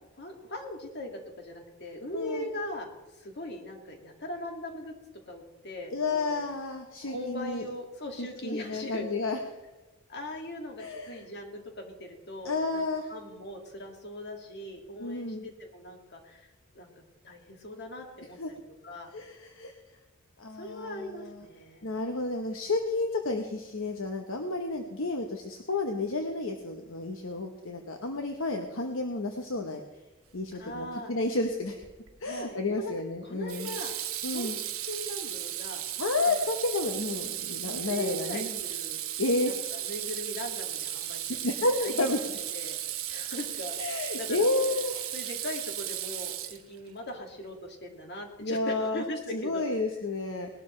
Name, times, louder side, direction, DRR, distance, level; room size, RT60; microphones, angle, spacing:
voice 1, 0.2-4.9 5.3-6.3 7.0-9.1 10.1-12.8 13.1-16.9 17.2-18.4 18.8-19.5 20.5-21.9 30.5-31.1 32.2-32.9 33.2-34.0 34.3-34.5 34.9-35.8 37.5-39.0 39.4-41.4 41.8-42.8 43.1-44.5 45.1-49.6, left 1 dB, 50° left, 2 dB, 2.2 m, -40 dB
voice 2, 2.1-2.5 5.9-7.6 8.2-9.4 10.8-11.2 12.4-13.1 15.0-15.4 18.4-18.5 19.1-19.7 20.4-21.3 21.8-29.8 30.3-31.8 32.2-33.7 34.2-34.6 36.0-38.6 39.2-39.5 41.4-42.2 43.8-45.1 48.4-49.0 49.3-50.5, left 2 dB, 65° left, 4 dB, 1.0 m, -31 dB
Water tap faucet / Sink (filling or washing), 31.8-32.2 33.5-46.9, right 12 dB, 75° right, 1.1 m, -35 dB
19.5 x 12.0 x 3.2 m, 1.1 s
head